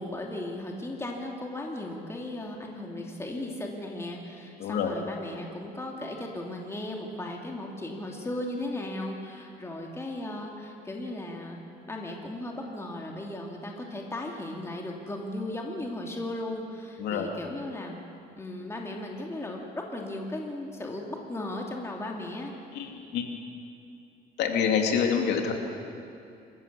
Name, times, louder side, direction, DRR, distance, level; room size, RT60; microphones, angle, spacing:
voice 1, 0.0-11.6 11.9-18.0 18.4-22.5, left 1 dB, 15° left, 0 dB, 2.8 m, -36 dB
voice 2, 4.6-4.9 17.0-17.3 22.7-23.4 24.4-25.5, left 7 dB, 80° left, 3 dB, 2.8 m, -27 dB
27.0 x 15.0 x 7.1 m, 2.6 s
cardioid pair, 110°, 17 cm